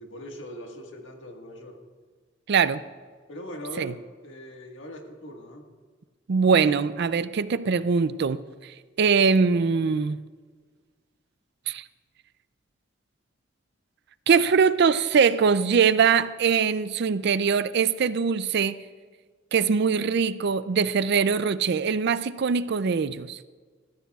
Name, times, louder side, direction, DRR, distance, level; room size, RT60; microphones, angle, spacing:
voice 1, 0.0-1.8 2.7-2.8 3.3-5.7, equal, 65° left, 2 dB, 1.7 m, -41 dB
voice 2, 2.5-2.8 3.8-3.9 6.3-8.7 9.0-10.2 11.7-11.8 14.3-18.8 19.5-23.4, right 6 dB, 55° right, 15 dB, 0.4 m, -22 dB
19.5 x 14.0 x 2.4 m, 1.6 s
head